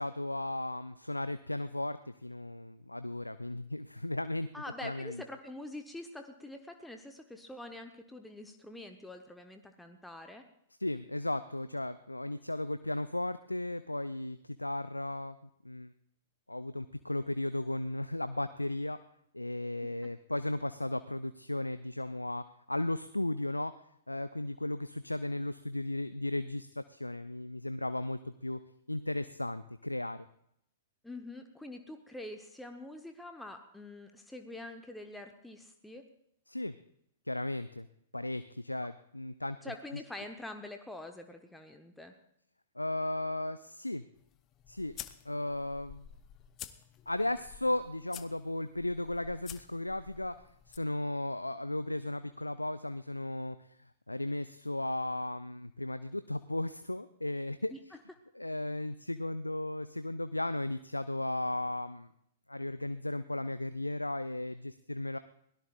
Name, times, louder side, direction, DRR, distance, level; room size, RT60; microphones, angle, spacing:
voice 1, 0.0-4.5 4.8-5.2 10.8-15.4 15.6-15.9 16.5-19.0 19.3-23.7 24.1-28.6 28.9-30.3 36.5-36.8 37.3-37.9 38.1-39.7 42.8-44.0 44.7-44.9 45.3-46.1 47.1-50.4 50.7-57.7 58.3-62.1 62.5-65.2, left 1 dB, 85° left, 13 dB, 0.5 m, -35 dB
voice 2, 4.5-10.4 31.0-36.1 39.6-42.1 57.7-57.8, left 1 dB, 5° left, 5 dB, 1.0 m, -45 dB
sound 1, 44.1-50.8, left 11 dB, 30° left, 0.8 m, -50 dB
23.0 x 17.0 x 2.5 m, 0.73 s
figure-of-eight pair, 105°, 0 cm